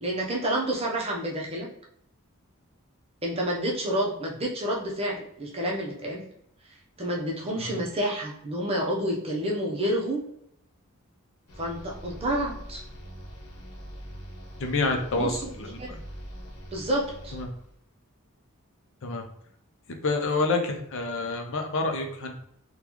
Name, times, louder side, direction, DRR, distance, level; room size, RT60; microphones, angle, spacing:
voice 1, 0.0-1.7 3.2-6.2 7.0-10.2 11.6-12.8 15.1-16.0 16.7-17.4, right 1 dB, 25° right, -2 dB, 0.7 m, -29 dB
sound 1, 11.5-17.8, equal, 80° left, 0.9 m, -43 dB
voice 2, 14.6-15.8 17.3-17.5 19.0-19.2 20.0-22.3, left 3 dB, 60° left, 4 dB, 0.6 m, -28 dB
3.8 x 2.3 x 2.9 m, 0.72 s
head